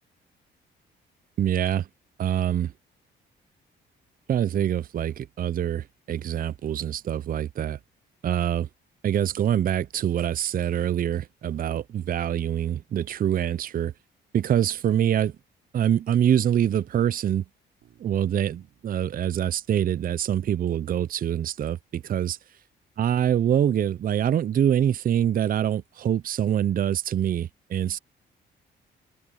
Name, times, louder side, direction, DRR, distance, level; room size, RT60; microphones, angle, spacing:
voice 1, 1.4-1.9 2.2-2.7 4.3-7.8 8.2-8.7 9.0-13.9 14.3-15.4 15.7-17.4 18.0-22.4 23.0-28.0, right 10 dB, 45° right, 0.5 m, -25 dB
Bass guitar, 17.8-21.8, right 12 dB, 80° right, 5.6 m, -65 dB
cardioid pair, 90°, 20 cm